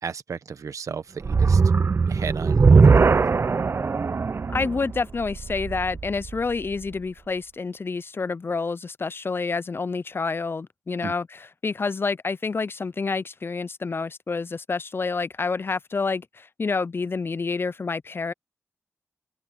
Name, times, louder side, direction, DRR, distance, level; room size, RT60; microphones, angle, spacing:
voice 1, 0.0-1.6 2.1-3.2 11.0-11.1, right 6 dB, 80° right, 1.3 m, -34 dB
sound 1, 1.2-6.5, right 4 dB, 50° right, 0.4 m, -20 dB
voice 2, 4.5-11.3 11.6-18.3, left 4 dB, 45° left, 0.4 m, -28 dB
open air
cardioid pair, 60°, 5 cm